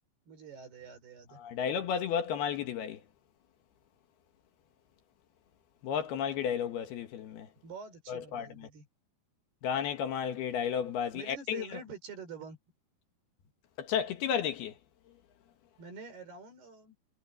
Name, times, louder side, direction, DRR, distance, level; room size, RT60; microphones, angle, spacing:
voice 1, 0.3-1.4 7.6-8.9 11.1-12.6 15.8-16.9, right 5 dB, 65° right, 7.3 m, -46 dB
voice 2, 1.4-3.0 5.8-7.5 8.1-8.5 9.6-11.7 13.8-14.7, left 8 dB, 70° left, 3.3 m, -32 dB
omnidirectional pair, 5.0 m